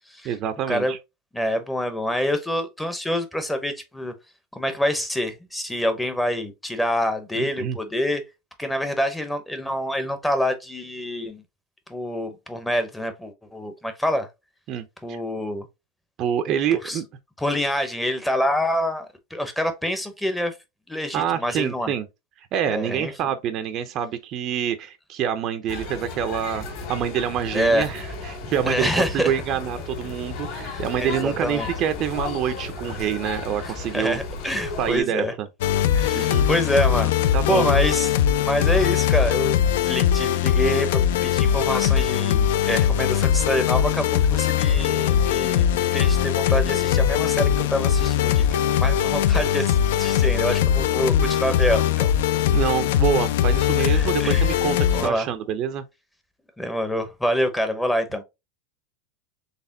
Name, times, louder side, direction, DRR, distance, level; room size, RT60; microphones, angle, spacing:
voice 1, 0.2-1.0 7.4-7.8 14.7-15.2 16.2-17.0 21.1-22.1 22.4-34.2 34.8-35.5 36.1-36.5 37.3-37.7 52.5-55.8, right 9 dB, 35° right, 0.5 m, -26 dB
voice 2, 1.3-4.1 4.5-8.2 8.6-11.4 11.9-14.3 15.0-15.7 16.8-17.0 17.4-19.1 19.3-20.5 20.9-21.9 22.7-23.1 27.5-27.9 28.7-29.3 30.7-31.7 33.6-35.3 35.9-37.1 37.4-38.1 38.4-39.6 39.8-52.1 53.8-54.5 54.9-55.3 56.6-58.2, equal, 5° left, 0.6 m, -26 dB
sound 1, 25.7-35.0, left 4 dB, 50° left, 2.0 m, -34 dB
sound 2, 35.6-55.1, left 9 dB, 70° left, 0.4 m, -21 dB
4.1 x 3.4 x 2.6 m
supercardioid pair, 155°, 0 cm